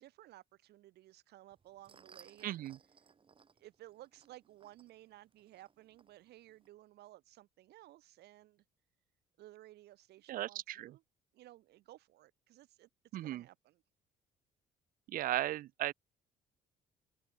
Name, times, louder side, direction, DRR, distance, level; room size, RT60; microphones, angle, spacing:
voice 1, 0.0-2.7 3.6-8.6 9.4-11.0 11.3-12.9 13.2-13.8, right 15 dB, 75° right, 4.9 m, -57 dB
sound 1, 1.5-6.7, right 5 dB, 30° right, 3.4 m, -64 dB
voice 2, 2.4-2.8 10.3-10.9 13.1-13.4 15.1-15.9, right 13 dB, 55° right, 0.4 m, -36 dB
open air
cardioid pair, 110°, 17 cm